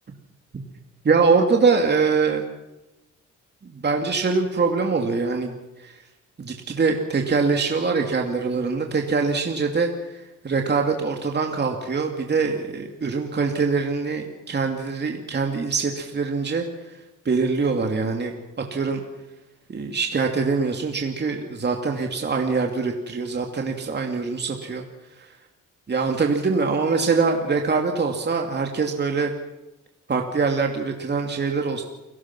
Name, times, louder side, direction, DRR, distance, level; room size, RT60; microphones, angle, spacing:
voice 1, 1.0-2.4 3.6-5.5 5.8-5.9 6.4-9.9 10.4-16.7 17.2-18.3 18.7-19.0 19.7-24.8 25.9-29.3 30.1-31.8, right 4 dB, 35° right, 2 dB, 2.7 m, -23 dB
29.0 x 17.5 x 6.2 m, 1.0 s
cardioid pair, 90°, 30 cm